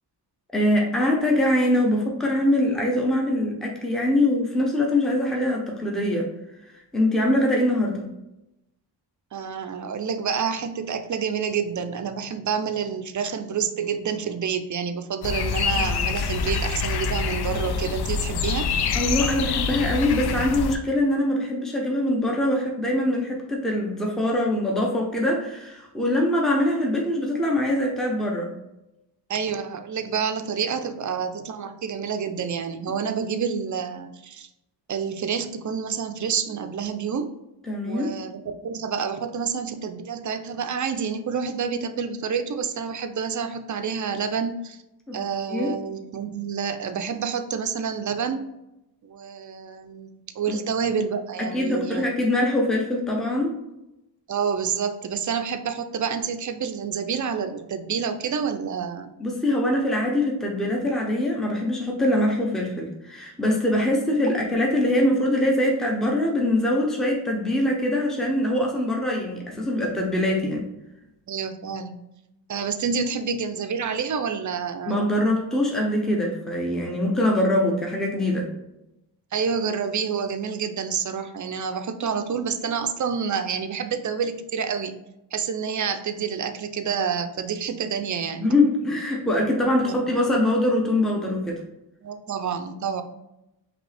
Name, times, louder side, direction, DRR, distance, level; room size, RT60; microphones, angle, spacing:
voice 1, 0.5-6.3 6.7-8.0 18.9-28.5 37.7-38.1 45.1-45.2 45.5-45.7 50.5-50.6 51.4-53.6 59.2-70.7 74.8-78.5 88.4-91.6, left 1 dB, ahead, -1 dB, 0.7 m, -23 dB
voice 2, 9.3-18.7 29.3-34.5 34.9-37.3 37.8-44.8 45.1-48.4 49.0-52.1 54.3-59.1 71.3-72.0 72.5-75.0 79.3-85.0 85.3-88.5 89.8-90.0 92.0-93.0, right 6 dB, 45° right, 9 dB, 0.5 m, -28 dB
sound 1, 15.2-20.8, left 6 dB, 65° left, 0.5 m, -26 dB
5.1 x 2.9 x 3.3 m, 0.91 s
wide cardioid pair, 115°, 41 cm